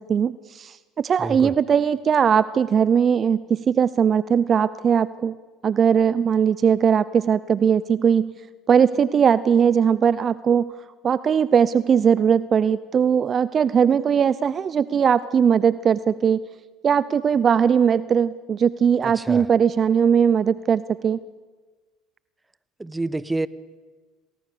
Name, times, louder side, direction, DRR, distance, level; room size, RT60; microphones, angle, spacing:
voice 1, 0.0-5.3 5.6-8.3 8.7-10.7 11.0-16.4 16.8-21.2, right 7 dB, 40° right, 17 dB, 0.6 m, -19 dB
voice 2, 1.2-1.5 19.0-19.5 22.8-23.5, right 2 dB, 15° right, 16 dB, 1.1 m, -28 dB
28.0 x 19.5 x 6.9 m, 1.3 s
hypercardioid pair, 70°, 0 cm